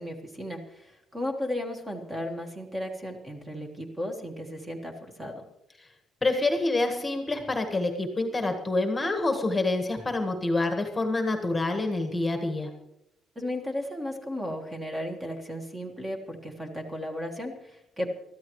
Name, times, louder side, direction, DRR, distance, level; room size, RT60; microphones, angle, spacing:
voice 1, 0.0-5.4 13.3-18.1, left 1 dB, 15° right, 3 dB, 1.6 m, -35 dB
voice 2, 6.2-12.7, left 2 dB, 10° left, 5 dB, 1.5 m, -27 dB
23.5 x 13.5 x 3.2 m, 0.84 s
cardioid pair, 165°, 0 cm